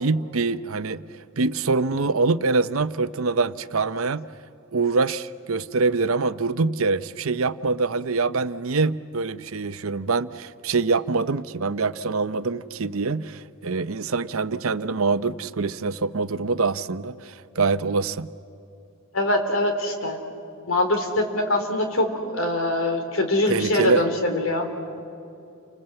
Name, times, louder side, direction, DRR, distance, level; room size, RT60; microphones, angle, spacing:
voice 1, 0.0-4.3 4.7-18.3 23.5-24.0, right 4 dB, 75° right, 13 dB, 0.7 m, -24 dB
voice 2, 19.1-20.2 20.7-22.1 22.3-24.7, left 1 dB, 75° left, 5 dB, 3.6 m, -23 dB
30.0 x 25.5 x 7.9 m, 2.8 s
head